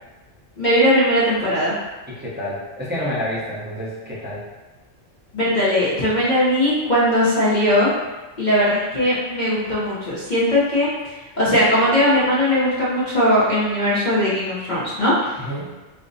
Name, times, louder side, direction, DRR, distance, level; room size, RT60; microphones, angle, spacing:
voice 1, 0.6-1.7 5.3-7.9 8.4-10.9 11.4-15.4, equal, 45° left, -9 dB, 0.8 m, -19 dB
voice 2, 2.1-4.4 15.4-15.7, equal, 10° right, -10 dB, 0.7 m, -28 dB
3.3 x 2.1 x 3.9 m, 1.1 s
omnidirectional pair, 1.3 m